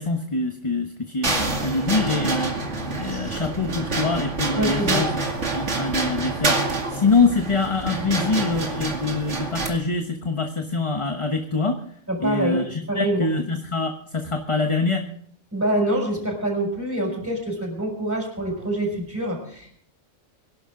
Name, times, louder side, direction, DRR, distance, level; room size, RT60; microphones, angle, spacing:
voice 1, 0.0-2.5 2.9-5.1 5.5-11.8 12.2-15.0, left 3 dB, 25° left, 4 dB, 1.1 m, -24 dB
sound 1, 1.2-9.7, right 3 dB, 70° right, 2.7 m, -27 dB
voice 2, 4.5-5.1 12.1-13.3 15.5-19.7, right 1 dB, 10° right, -1 dB, 6.3 m, -25 dB
24.5 x 11.5 x 3.8 m, 0.63 s
omnidirectional pair, 1.3 m